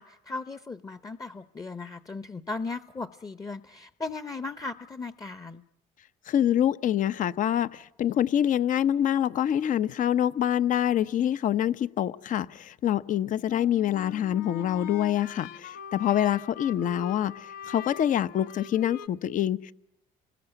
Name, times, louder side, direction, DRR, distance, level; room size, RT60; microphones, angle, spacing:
voice 1, 0.0-5.6, left 3 dB, 20° left, 13 dB, 0.9 m, -37 dB
voice 2, 6.3-19.7, left 10 dB, 55° left, 16 dB, 0.9 m, -26 dB
sound 1, 13.5-19.1, left 8 dB, 75° left, 1.3 m, -42 dB
28.0 x 20.0 x 8.0 m, 0.82 s
supercardioid pair, 90°, 16 cm